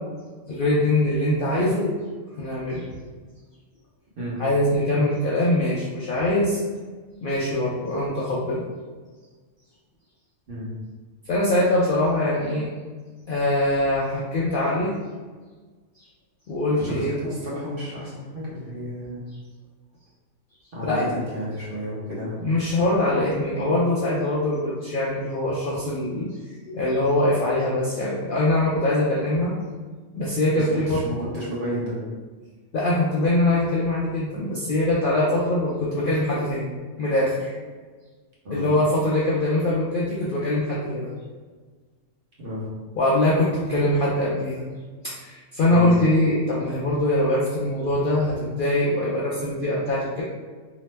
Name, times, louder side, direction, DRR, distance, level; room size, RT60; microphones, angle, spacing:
voice 1, 0.5-2.0 2.4-2.9 4.4-6.6 7.2-8.6 11.3-12.7 13.3-14.9 16.0-16.1 16.5-17.1 20.8-21.1 22.4-26.3 26.7-29.5 30.1-31.0 32.7-36.7 37.0-37.5 38.5-41.1 43.0-44.7 45.0-50.2, left 1 dB, 65° left, -6 dB, 0.5 m, -23 dB
voice 2, 16.8-19.2 20.7-22.5 30.6-32.0 38.4-38.7 42.4-42.7 45.6-45.9, equal, 50° right, -7 dB, 1.0 m, -31 dB
2.9 x 2.0 x 3.2 m, 1.4 s
omnidirectional pair, 1.3 m